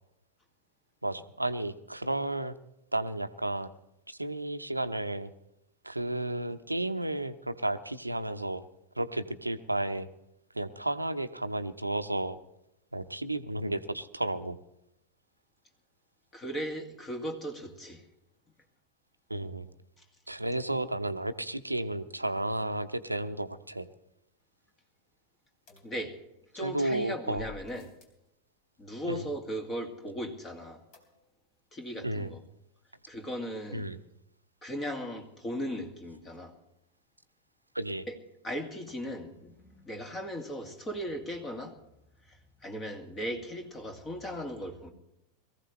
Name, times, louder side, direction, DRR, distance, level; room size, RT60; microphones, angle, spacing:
voice 1, 1.0-2.6 2.9-3.7 4.1-5.3 5.8-8.6 9.0-10.1 10.5-12.4 12.9-14.6 19.3-19.7 20.3-23.9 26.6-27.5 29.0-29.3 32.0-32.3 33.7-34.0 37.7-38.1, right 1 dB, 85° right, 11 dB, 0.8 m, -32 dB
voice 2, 16.3-18.0 25.8-26.2 26.5-27.9 28.8-30.8 31.7-32.4 33.1-33.9 34.6-36.5 38.1-38.2 38.4-41.8 42.3-44.9, equal, 20° left, 4 dB, 2.2 m, -37 dB
sound 1, 25.7-26.6 27.3-28.3 30.9-31.5 31.8-31.9 32.2-32.3, left 3 dB, 40° left, 3.4 m, -53 dB
22.5 x 15.0 x 3.2 m, 0.87 s
figure-of-eight pair, 90°, 0 cm